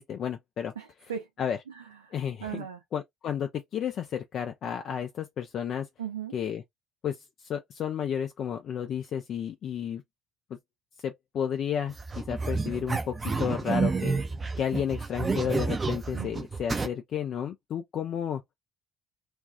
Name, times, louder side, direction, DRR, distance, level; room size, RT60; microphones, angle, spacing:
voice 1, 0.0-0.7 1.4-1.6 2.1-2.6 2.9-5.9 6.3-6.6 7.0-10.0 11.0-14.2 14.6-18.4, left 8 dB, 50° left, 0.4 m, -32 dB
voice 2, 0.8-1.3 1.7-2.1 2.4-2.8 6.0-6.3 16.1-16.4, right 8 dB, 80° right, 0.7 m, -38 dB
sound 1, 11.9-16.9, right 4 dB, 30° right, 0.6 m, -30 dB
2.5 x 2.3 x 3.4 m
figure-of-eight pair, 55°, 0 cm